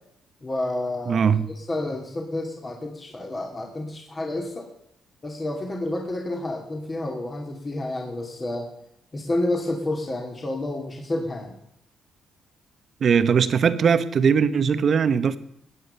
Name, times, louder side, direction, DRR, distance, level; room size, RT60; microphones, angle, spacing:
voice 1, 0.4-4.7 5.2-8.7 9.1-11.5, left 1 dB, 30° left, 2.6 m, -30 dB
voice 2, 1.1-1.5 13.0-15.4, right 6 dB, 55° right, 1.1 m, -20 dB
17.0 x 9.5 x 6.8 m
cardioid pair, 90°, 0 cm